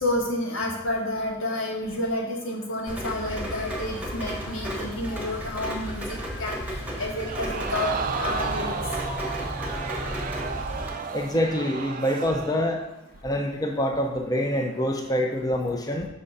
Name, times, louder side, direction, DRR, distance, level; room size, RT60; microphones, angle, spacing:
voice 1, 0.0-6.6 7.0-8.7, left 1 dB, 85° left, -1 dB, 1.4 m, -30 dB
Rain, 2.9-10.9, equal, 5° right, 1.0 m, -33 dB
Crowd, 7.2-12.7 13.1-13.2, right 5 dB, 45° right, 0.4 m, -33 dB
voice 2, 11.1-12.8 13.2-16.1, equal, 20° left, 2 dB, 0.5 m, -26 dB
5.5 x 3.8 x 5.4 m, 0.90 s
head